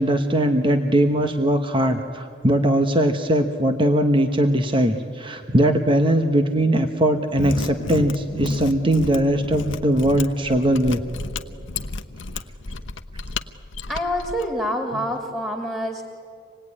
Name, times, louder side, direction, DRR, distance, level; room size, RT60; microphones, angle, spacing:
voice 1, 0.0-11.0, right 1 dB, 25° right, 6 dB, 1.0 m, -20 dB
Mechanisms, 7.3-14.4, left 3 dB, 80° left, 1.0 m, -32 dB
voice 2, 13.9-16.0, equal, 5° right, 2 dB, 2.4 m, -26 dB
26.5 x 19.5 x 9.8 m, 2.5 s
head